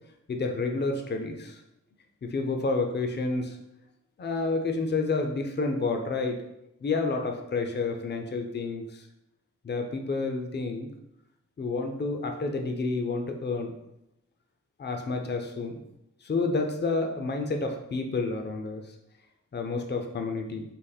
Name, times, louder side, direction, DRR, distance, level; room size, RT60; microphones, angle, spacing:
voice 1, 0.3-1.6 2.2-3.6 4.2-6.4 6.8-8.9 9.6-10.9 11.6-13.7 14.8-15.8 16.2-18.8 19.5-20.6, left 3 dB, 35° left, 4 dB, 0.5 m, -29 dB
4.2 x 2.8 x 4.0 m, 0.85 s
wide cardioid pair, 130°, 31 cm